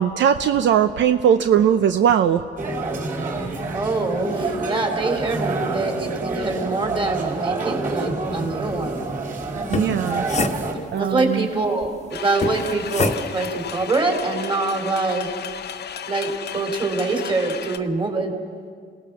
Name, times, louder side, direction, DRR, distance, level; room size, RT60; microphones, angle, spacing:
voice 1, 0.0-2.4 9.7-10.2 10.9-11.5, right 9 dB, 70° right, 9 dB, 0.7 m, -19 dB
sound 1, 2.6-10.7, right 3 dB, 40° right, 5.7 m, -27 dB
voice 2, 3.7-9.0 11.0-15.3 16.1-18.3, right 3 dB, 25° right, 4 dB, 3.8 m, -24 dB
sound 2, 9.6-11.2 12.4-13.5, left 3 dB, 35° left, 1.3 m, -27 dB
sound 3, 12.1-17.8, left 8 dB, 55° left, 1.0 m, -34 dB
27.5 x 18.0 x 6.2 m, 2.1 s
cardioid pair, 90°, 20 cm